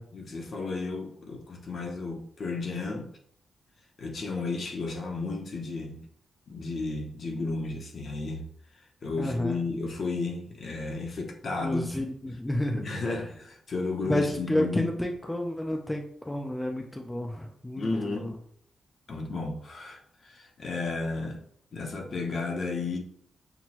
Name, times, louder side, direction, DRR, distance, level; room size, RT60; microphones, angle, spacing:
voice 1, 0.1-3.1 4.0-6.0 6.5-8.5 9.0-11.9 12.7-14.9 17.8-18.4 19.1-21.4 21.7-23.0, left 3 dB, 50° left, 2 dB, 0.7 m, -33 dB
voice 2, 9.2-9.6 11.6-13.2 14.1-18.3, left 1 dB, 10° left, 2 dB, 0.4 m, -30 dB
5.9 x 2.2 x 2.9 m, 0.66 s
cardioid pair, 120°, 0 cm